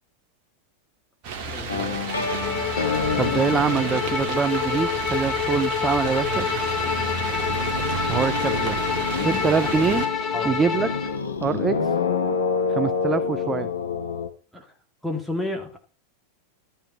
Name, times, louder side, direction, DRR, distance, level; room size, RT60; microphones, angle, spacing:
sound 1, 1.2-10.1, right 5 dB, 45° right, 2.2 m, -32 dB
voice 1, 1.5-2.0 9.1-9.7 10.3-10.6 14.5-14.7 15.0-15.8, left 2 dB, ahead, 2 dB, 2.2 m, -32 dB
sound 2, 1.7-5.8 6.0-14.3, left 5 dB, 70° left, 1.0 m, -29 dB
Bowed string instrument, 2.1-11.2, left 7 dB, 30° left, 1.4 m, -27 dB
voice 2, 3.2-6.5 8.1-8.8 9.3-10.0 10.4-10.9 11.4-11.8 12.7-13.7, right 6 dB, 20° right, 13 dB, 0.5 m, -24 dB
12.0 x 5.7 x 6.9 m, 0.39 s
figure-of-eight pair, 90°, 0 cm